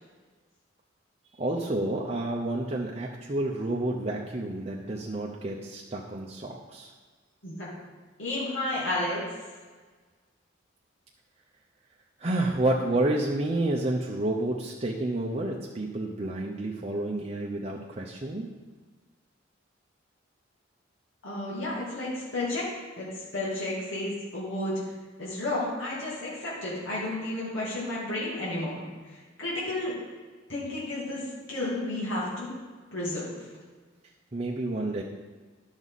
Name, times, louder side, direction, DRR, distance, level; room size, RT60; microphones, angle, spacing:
voice 1, 1.4-6.9 12.2-18.5 34.3-35.0, right 2 dB, 30° right, -2 dB, 0.7 m, -30 dB
voice 2, 8.2-9.2 21.2-22.7 23.0-23.1 23.3-24.8 25.2-28.8 29.4-29.9 30.5-31.2 31.5-32.5 32.9-33.3, left 1 dB, 75° left, -7 dB, 2.6 m, -31 dB
11.0 x 6.1 x 4.1 m, 1.4 s
head